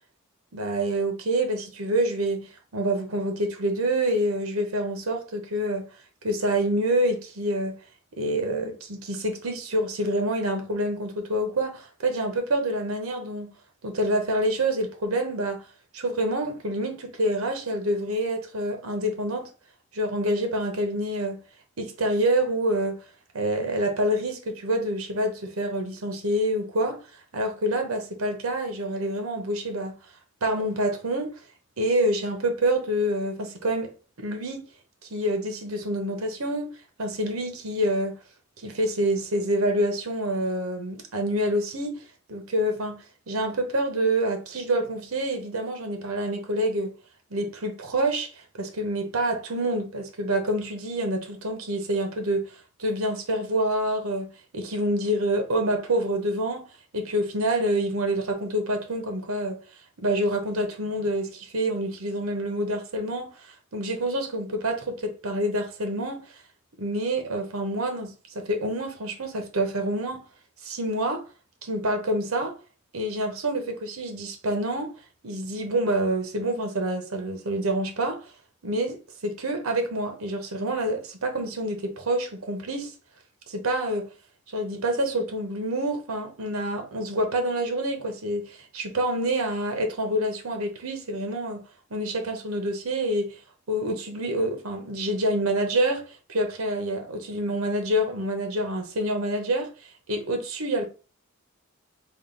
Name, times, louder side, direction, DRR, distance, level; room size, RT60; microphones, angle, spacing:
voice 1, 0.5-5.9 6.2-7.8 8.2-13.5 13.8-15.6 15.9-19.5 19.9-21.4 21.8-23.0 23.3-27.0 27.3-29.9 30.4-31.4 31.8-33.9 34.2-34.6 35.1-36.7 37.0-38.2 38.6-42.0 42.3-46.9 47.3-52.5 52.8-54.3 54.5-56.6 56.9-59.6 60.0-66.2 66.8-70.2 70.6-71.2 71.6-72.5 72.9-74.9 75.2-78.3 78.6-82.9 83.5-84.1 84.5-91.6 91.9-93.4 93.7-99.7 100.1-100.8, right 1 dB, 80° right, 0.9 m, -27 dB
3.6 x 2.4 x 3.7 m
head